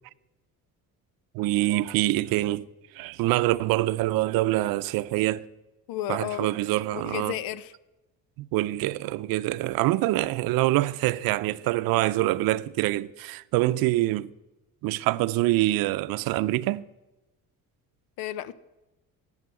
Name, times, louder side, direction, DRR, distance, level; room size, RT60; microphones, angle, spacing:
voice 1, 1.3-2.7 2.9-5.4 6.1-7.4 8.4-14.3 14.8-16.8, right 17 dB, 85° right, 0.6 m, -25 dB
voice 2, 5.9-6.5 6.9-7.7 18.2-18.5, left 12 dB, 85° left, 0.9 m, -32 dB
16.0 x 9.3 x 8.2 m
cardioid pair, 150°, 34 cm